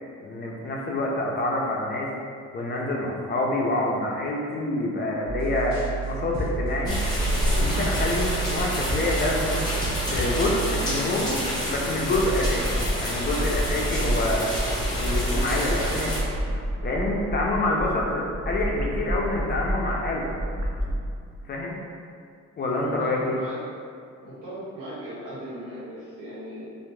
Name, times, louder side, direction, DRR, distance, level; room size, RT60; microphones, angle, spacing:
voice 1, 0.2-2.1 2.5-7.0 7.5-9.6 10.1-14.5 15.0-16.2 16.8-20.3 21.4-21.8 22.6-23.4, left 2 dB, 35° left, -2 dB, 0.4 m, -27 dB
sound 1, 5.3-11.0, right 4 dB, 20° right, 1.2 m, -30 dB
sound 2, 6.9-16.2, equal, 15° left, 1.0 m, -28 dB
sound 3, 12.0-21.0, right 1 dB, 50° right, 0.5 m, -29 dB
voice 2, 22.7-23.6 24.2-26.7, equal, 80° right, -10 dB, 1.3 m, -38 dB
2.9 x 2.4 x 2.2 m, 2.3 s
cardioid pair, 90°, 30 cm